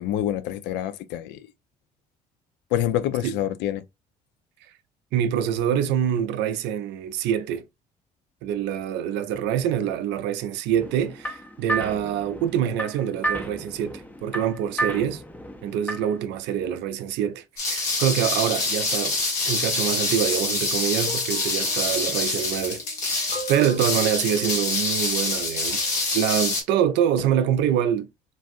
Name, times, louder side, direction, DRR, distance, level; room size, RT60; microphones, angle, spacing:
voice 1, 0.0-1.5 2.7-3.8, left 12 dB, 60° left, 0.4 m, -26 dB
voice 2, 5.1-7.6 8.4-15.2 15.6-28.1, right 9 dB, 60° right, 0.5 m, -25 dB
sound 1, 10.8-16.2, right 2 dB, 10° left, 0.6 m, -32 dB
sound 2, 17.6-26.6, left 3 dB, 80° left, 1.2 m, -26 dB
sound 3, 21.0-26.2 27.1-27.2, equal, 40° left, 1.2 m, -41 dB
3.8 x 2.4 x 2.4 m
hypercardioid pair, 55°, 20 cm